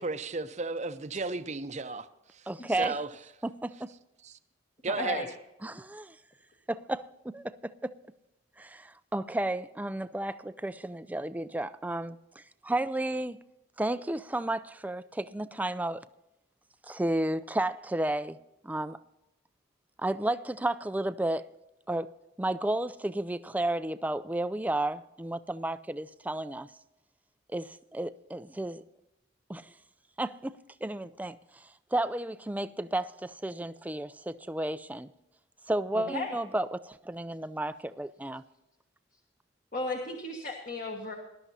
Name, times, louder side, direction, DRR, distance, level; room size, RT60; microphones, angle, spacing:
voice 1, 0.0-2.1 2.3-2.4 2.8-3.1 4.2-4.3 4.8-5.3, right 3 dB, 35° right, 0.7 m, -33 dB
voice 2, 2.5-3.0 3.4-3.9 5.6-6.2 6.7-7.9 8.6-13.4 13.8-16.0 16.9-18.4 18.6-19.0 20.0-21.5 21.9-22.1 22.4-26.7 27.5-28.8 29.5-29.7 30.2-35.1 35.7-38.4, right 1 dB, 10° right, 0.4 m, -32 dB
voice 3, 4.9-5.3 35.9-36.3 39.7-41.2, left 2 dB, 45° left, 1.5 m, -34 dB
20.0 x 12.0 x 2.8 m
head